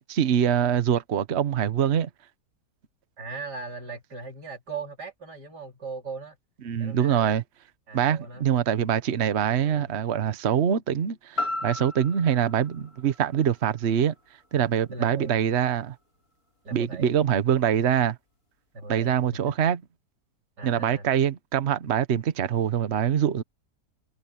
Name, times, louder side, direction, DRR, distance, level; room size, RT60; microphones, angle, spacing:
voice 1, 0.1-2.1 6.6-7.4 7.9-14.1 14.5-16.0 16.7-18.2 18.9-19.8 20.6-23.4, right 9 dB, 45° right, 1.1 m, -24 dB
voice 2, 3.2-6.4 6.8-7.4 7.9-8.5 9.6-9.9 14.9-15.5 16.6-17.1 18.7-19.1 19.4-19.5 20.6-21.1, right 4 dB, 90° right, 4.4 m, -39 dB
sound 1, 11.4-15.4 15.9-16.0, left 2 dB, 60° left, 6.9 m, -36 dB
omnidirectional pair, 1.7 m